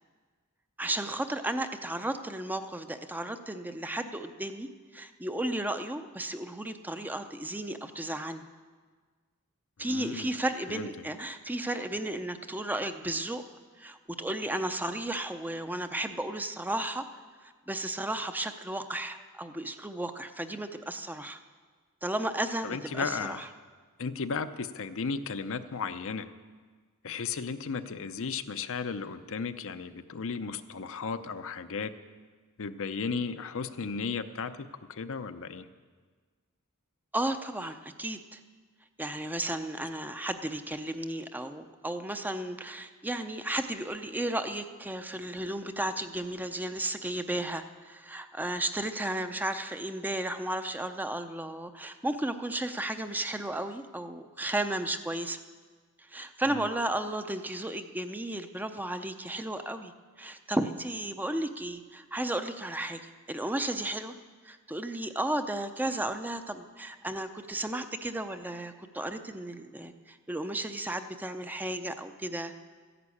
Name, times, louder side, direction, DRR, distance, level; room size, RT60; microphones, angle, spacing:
voice 1, 0.8-8.5 9.8-13.4 13.8-17.0 17.4-21.4 22.0-23.5 37.1-38.4 39.0-55.4 56.0-59.9 60.2-64.2 64.4-72.5, right 1 dB, 10° right, 8 dB, 0.6 m, -34 dB
voice 2, 9.8-10.3 10.7-10.9 22.6-23.4 24.0-26.3 27.0-31.9 32.6-35.6 56.5-56.7, left 5 dB, 65° left, 10 dB, 0.7 m, -35 dB
13.5 x 11.0 x 8.5 m, 1.5 s
head